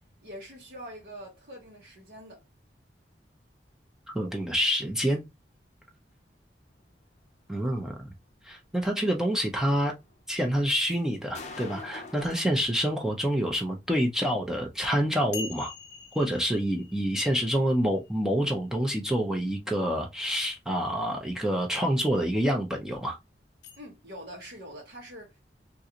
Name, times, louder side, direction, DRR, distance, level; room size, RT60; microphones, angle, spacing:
voice 1, 0.2-2.4 23.8-25.4, equal, 70° right, 1.0 m, -44 dB
voice 2, 4.1-5.2 7.5-8.1 8.4-9.9 10.3-15.7 16.1-23.2, equal, 5° right, 0.5 m, -27 dB
sound 1, 10.1-12.4, left 3 dB, 40° left, 0.6 m, -43 dB
sound 2, 15.3-19.0 23.6-23.8, left 4 dB, 80° left, 0.6 m, -44 dB
3.8 x 2.5 x 2.8 m
head